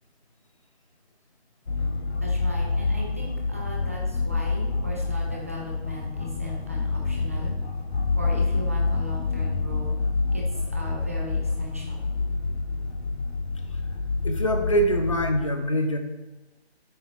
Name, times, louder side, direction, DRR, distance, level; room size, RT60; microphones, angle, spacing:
sound 1, 1.7-15.4, left 3 dB, 75° left, 1.6 m, -27 dB
voice 1, 2.2-7.5 8.2-9.9 10.3-12.0, equal, 15° right, -2 dB, 0.6 m, -38 dB
voice 2, 14.2-16.0, equal, 30° left, 6 dB, 0.7 m, -24 dB
9.2 x 6.7 x 3.1 m, 1.1 s
figure-of-eight pair, 165°, 33 cm